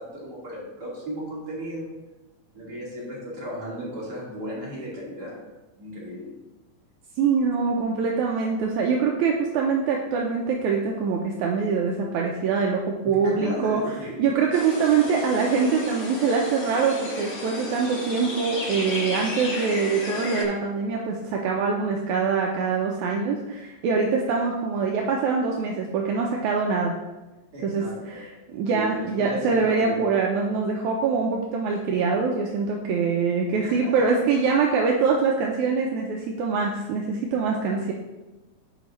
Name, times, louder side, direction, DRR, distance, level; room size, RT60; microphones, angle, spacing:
voice 1, 0.0-1.9 2.5-5.4 5.8-6.4 13.2-14.2 27.5-28.2 28.7-30.1 33.5-34.2, right 1 dB, 30° right, -6 dB, 2.4 m, -35 dB
voice 2, 7.2-13.8 14.2-27.0 27.6-37.9, right 5 dB, 80° right, 0 dB, 1.8 m, -24 dB
sound 1, 14.5-20.4, left 2 dB, 70° left, 0.7 m, -33 dB
12.0 x 4.8 x 3.1 m, 1.1 s
omnidirectional pair, 4.0 m